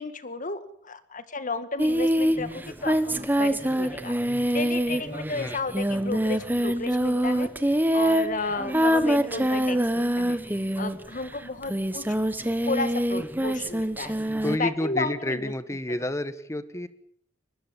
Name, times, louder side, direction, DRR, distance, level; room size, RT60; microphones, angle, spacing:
voice 1, 0.0-7.5 7.9-14.1 14.6-15.5, left 3 dB, 45° left, 11 dB, 1.8 m, -33 dB
Singing, 1.8-11.2 11.6-14.6, equal, 10° right, 1.3 m, -25 dB
voice 2, 14.4-16.9, left 1 dB, 15° left, 13 dB, 1.3 m, -29 dB
23.5 x 20.5 x 7.4 m, 0.67 s
head